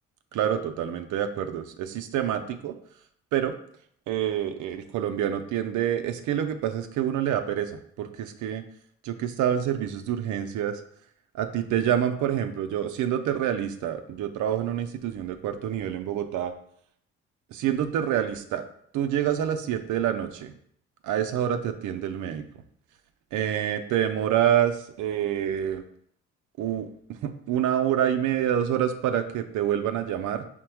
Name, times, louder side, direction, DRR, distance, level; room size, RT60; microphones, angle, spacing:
voice 1, 0.3-2.8 3.3-3.5 4.1-8.7 9.0-10.8 11.3-16.5 17.5-18.7 18.9-20.5 21.0-22.5 23.3-25.8 26.6-30.5, right 10 dB, 80° right, 7 dB, 0.5 m, -27 dB
5.8 x 2.1 x 4.4 m, 0.65 s
cardioid pair, 90°, 30 cm